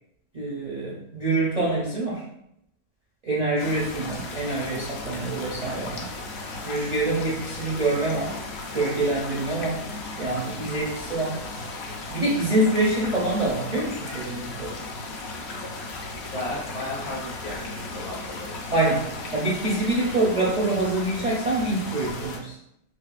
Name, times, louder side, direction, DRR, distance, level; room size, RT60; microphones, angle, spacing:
voice 1, 0.3-2.2 3.2-6.1 6.6-8.4 8.7-9.8 10.2-11.4 12.1-14.8 18.7-19.0 19.3-22.6, right 2 dB, 50° right, -6 dB, 0.4 m, -25 dB
sound 1, 3.6-22.4, left 2 dB, 65° left, 0.7 m, -36 dB
voice 2, 16.3-18.6, left 2 dB, 85° left, -7 dB, 2.1 m, -34 dB
4.5 x 2.4 x 2.4 m, 0.79 s
omnidirectional pair, 1.5 m